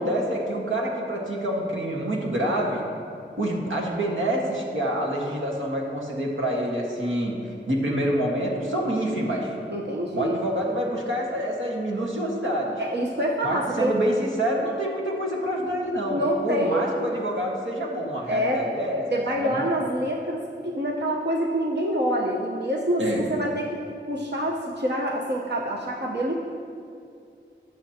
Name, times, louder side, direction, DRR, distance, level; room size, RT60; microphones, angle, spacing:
voice 1, 0.0-2.8 3.4-7.4 7.7-9.5 10.1-12.8 13.4-19.0 19.4-19.6 23.0-23.2, right 1 dB, 90° right, -2 dB, 1.6 m, -27 dB
voice 2, 9.7-10.4 12.8-14.0 16.1-16.9 18.3-18.6 19.1-23.7 24.1-26.3, equal, 60° right, -2 dB, 1.0 m, -26 dB
18.5 x 7.2 x 2.9 m, 2.5 s
wide cardioid pair, 55°, 20 cm